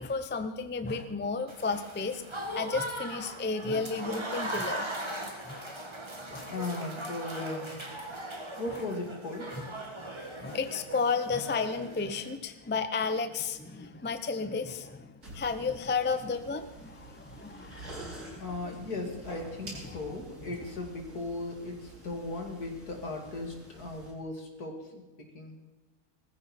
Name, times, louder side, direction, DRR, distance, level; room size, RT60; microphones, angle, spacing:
voice 1, 0.0-2.2 2.6-4.9 5.4-5.6 6.3-6.5 9.6-9.7 10.4-18.7 19.8-20.0, left 4 dB, 10° left, 9 dB, 0.5 m, -33 dB
Applause / Crowd, 1.5-12.4, right 1 dB, 20° right, 1.6 m, -39 dB
voice 2, 6.5-8.1 8.6-9.5 18.4-25.0 25.3-25.6, left 2 dB, 80° left, 2 dB, 2.9 m, -37 dB
Coffee Slurp, 15.2-24.1, right 1 dB, 80° right, 6.2 m, -48 dB
19.5 x 14.5 x 4.4 m, 1.1 s
omnidirectional pair, 1.6 m